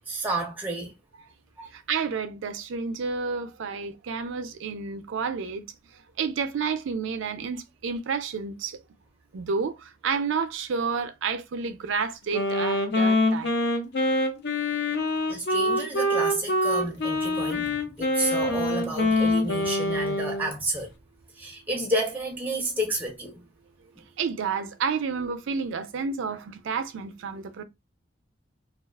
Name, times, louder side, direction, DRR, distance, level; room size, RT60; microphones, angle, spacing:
voice 1, 0.1-0.9 1.6-1.7 15.3-20.9 21.4-23.4 24.0-24.1, right 1 dB, 10° right, 0.5 m, -31 dB
voice 2, 1.7-5.6 6.2-8.8 9.3-13.5 24.2-27.6, right 5 dB, 70° right, 0.4 m, -30 dB
Wind instrument woodwind instrument, 12.3-20.5, left 1 dB, 55° left, 0.5 m, -25 dB
2.3 x 2.3 x 2.2 m
head